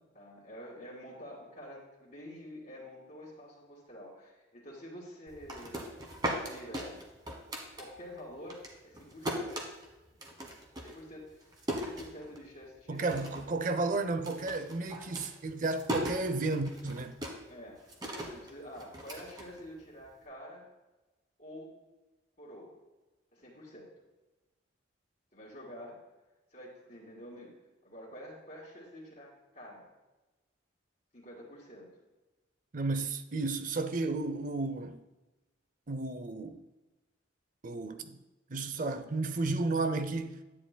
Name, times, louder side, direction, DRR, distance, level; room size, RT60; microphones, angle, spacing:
voice 1, 0.1-5.9 6.4-7.0 7.7-9.5 10.8-13.2 17.5-17.8 18.2-20.7 21.4-21.8 22.4-22.8 23.3-23.9 25.3-26.0 26.5-27.5 27.8-29.9 31.1-31.9, equal, 45° left, 2.3 m, -48 dB
sound 1, 5.3-8.2 8.5-12.6 13.0-13.6 13.8-20.1, equal, 20° right, 1.2 m, -39 dB
voice 2, 12.9-17.2 32.7-35.0 35.9-36.6 37.6-38.2 38.5-40.4, right 3 dB, 40° right, 0.5 m, -33 dB
10.0 x 10.0 x 2.2 m
head